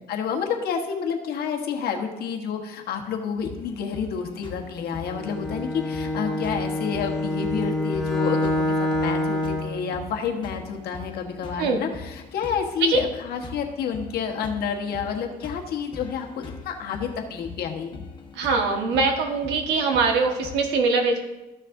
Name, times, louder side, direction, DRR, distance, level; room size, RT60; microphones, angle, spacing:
voice 1, 0.1-18.0, left 6 dB, 70° left, 2 dB, 1.3 m, -29 dB
sound 1, 3.4-20.6, left 4 dB, 30° left, 1.3 m, -42 dB
Bowed string instrument, 5.1-9.8, left 1 dB, 5° left, 1.5 m, -26 dB
voice 2, 18.3-21.2, right 4 dB, 90° right, 3 dB, 1.4 m, -22 dB
14.0 x 6.4 x 2.6 m, 1.0 s
cardioid pair, 110°, 17 cm